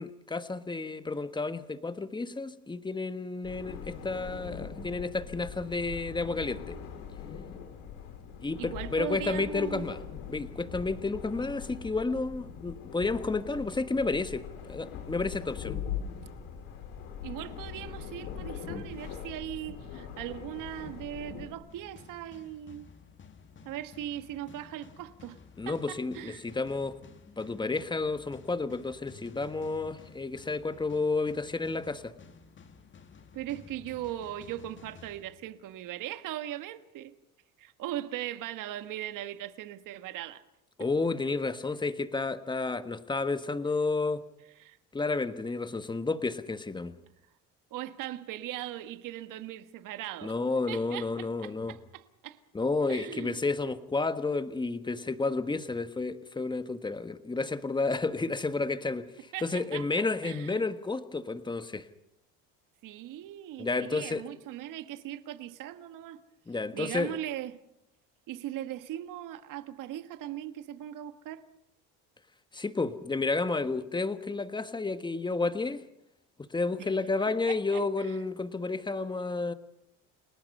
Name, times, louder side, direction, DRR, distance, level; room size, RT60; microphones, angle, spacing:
voice 1, 0.0-6.8 8.4-10.0 10.3-15.8 25.6-27.0 27.3-32.1 40.8-44.2 44.9-47.0 50.2-51.8 52.5-61.9 63.6-64.2 66.5-67.2 72.5-75.8 76.5-79.5, left 3 dB, 15° left, 1.4 m, -31 dB
sound 1, 3.4-21.5, left 7 dB, 85° left, 4.6 m, -41 dB
voice 2, 8.6-9.8 17.2-22.9 23.6-25.4 25.6-26.4 33.3-37.1 37.6-40.4 44.6-44.8 47.7-50.3 50.7-52.4 52.9-53.4 59.3-60.6 62.8-66.2 66.7-67.5 68.3-71.4 76.8-76.9 77.5-77.8, right 12 dB, 65° right, 1.6 m, -39 dB
sound 2, 21.7-35.9, left 5 dB, 35° left, 2.1 m, -53 dB
30.0 x 19.0 x 5.5 m
cardioid pair, 115°, 34 cm